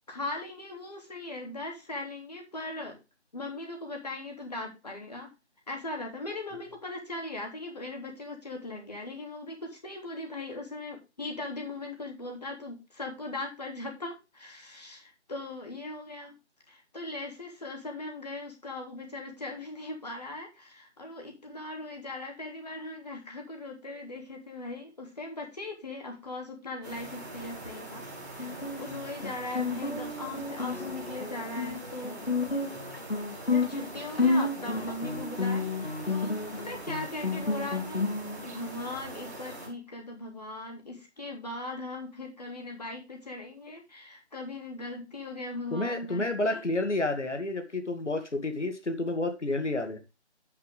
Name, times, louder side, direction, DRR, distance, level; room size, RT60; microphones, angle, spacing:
voice 1, 0.1-3.0 3.3-5.3 5.7-16.3 16.7-28.0 28.4-32.2 33.5-38.2 38.4-46.6, left 2 dB, 35° left, 2 dB, 3.2 m, -39 dB
sound 1, 26.8-39.7, right 2 dB, 15° right, 2.2 m, -43 dB
Guitar, 28.4-38.4, left 3 dB, 60° left, 2.9 m, -31 dB
voice 2, 45.7-50.0, left 2 dB, 90° left, 6 dB, 2.3 m, -30 dB
10.5 x 8.0 x 3.4 m, 0.26 s
figure-of-eight pair, 175°, 34 cm